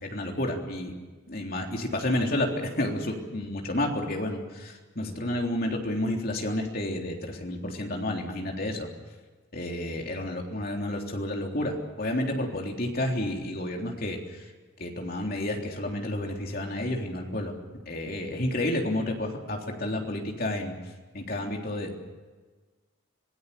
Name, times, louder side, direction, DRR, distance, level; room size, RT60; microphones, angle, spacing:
voice 1, 0.0-0.9 1.3-8.9 9.5-14.4 14.8-17.5 17.9-20.7 21.1-22.0, left 1 dB, 45° left, 1 dB, 3.6 m, -30 dB
26.0 x 19.5 x 7.0 m, 1.3 s
head